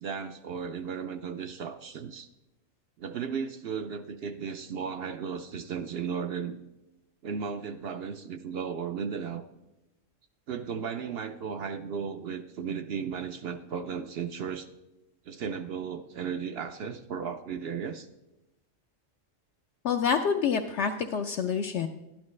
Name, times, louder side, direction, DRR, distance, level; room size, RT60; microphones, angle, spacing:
voice 1, 0.0-2.3 3.0-6.6 7.2-9.4 10.5-14.7 15.3-18.1, right 6 dB, 60° right, 8 dB, 0.7 m, -35 dB
voice 2, 19.8-21.9, left 6 dB, 70° left, 4 dB, 0.8 m, -27 dB
12.0 x 10.5 x 3.2 m, 0.99 s
omnidirectional pair, 1.4 m